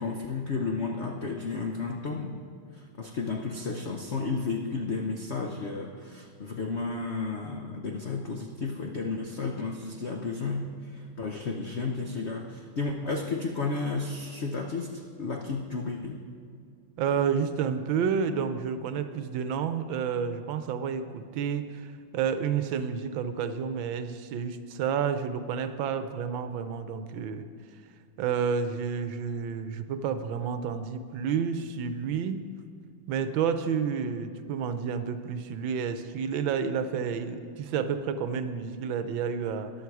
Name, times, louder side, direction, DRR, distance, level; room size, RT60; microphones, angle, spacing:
voice 1, 0.0-2.4 2.7-16.2, left 4 dB, 80° left, 2 dB, 0.6 m, -32 dB
voice 2, 17.0-27.5 28.2-32.5 33.1-39.7, right 7 dB, 75° right, 10 dB, 1.4 m, -30 dB
14.5 x 10.5 x 4.7 m, 2.3 s
omnidirectional pair, 2.3 m